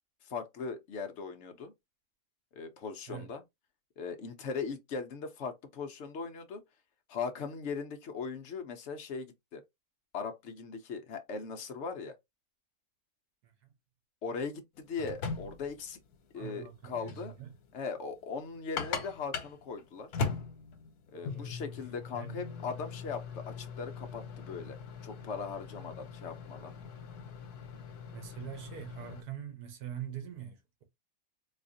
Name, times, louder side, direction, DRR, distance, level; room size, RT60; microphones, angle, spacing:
voice 1, 0.2-1.7 2.6-3.4 4.0-6.6 7.1-9.6 10.1-12.2 14.2-16.0 16.3-17.4 17.7-20.1 21.1-24.8 25.0-26.7, left 5 dB, 60° left, 0.8 m, -39 dB
sound 1, 14.8-29.2, left 5 dB, 85° left, 1.3 m, -41 dB
voice 2, 16.3-17.6 21.1-21.5 22.1-22.4 28.1-30.8, right 10 dB, 90° right, 1.5 m, -43 dB
4.2 x 2.4 x 2.6 m
omnidirectional pair, 1.6 m